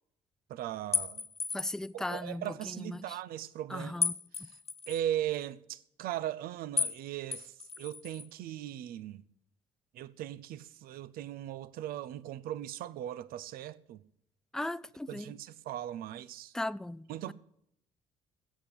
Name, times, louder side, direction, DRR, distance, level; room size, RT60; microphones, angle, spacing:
voice 1, 0.5-1.2 1.9-4.1 4.3-4.5 4.9-9.2 9.9-14.0 15.1-16.5 17.1-17.3, right 12 dB, 60° right, 0.7 m, -38 dB
sound 1, 0.9-1.9 4.0-5.0 6.8-7.0 7.3-8.3, left 5 dB, 35° left, 1.5 m, -34 dB
voice 2, 1.5-3.2 3.7-4.2 4.4-4.5 14.5-15.3 16.5-17.3, left 1 dB, 5° left, 0.5 m, -38 dB
14.0 x 8.4 x 7.9 m
hypercardioid pair, 50°, 17 cm